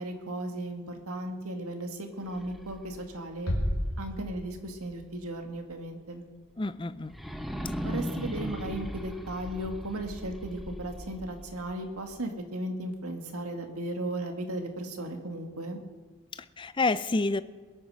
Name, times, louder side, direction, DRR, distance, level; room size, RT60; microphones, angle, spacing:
voice 1, 0.0-3.5 4.0-6.2 7.8-15.8, right 1 dB, 85° right, 5 dB, 2.1 m, -36 dB
sound 1, 2.2-5.1 5.6-5.7 7.1-12.1, equal, ahead, 0.8 m, -39 dB
sound 2, 3.5-5.1, equal, 85° left, 3.3 m, -32 dB
voice 2, 6.6-7.1 16.3-17.4, left 3 dB, 20° left, 14 dB, 0.5 m, -29 dB
21.5 x 9.2 x 6.5 m, 1.5 s
head